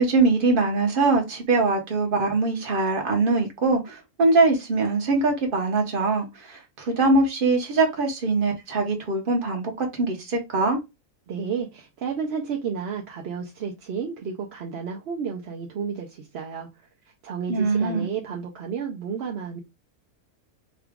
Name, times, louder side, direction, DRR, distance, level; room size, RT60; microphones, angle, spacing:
voice 1, 0.0-10.8 17.5-18.1, right 3 dB, 40° right, 1.0 m, -22 dB
voice 2, 11.3-16.7 17.2-19.6, right 6 dB, 60° right, 0.7 m, -31 dB
3.9 x 2.3 x 3.5 m
omnidirectional pair, 1.7 m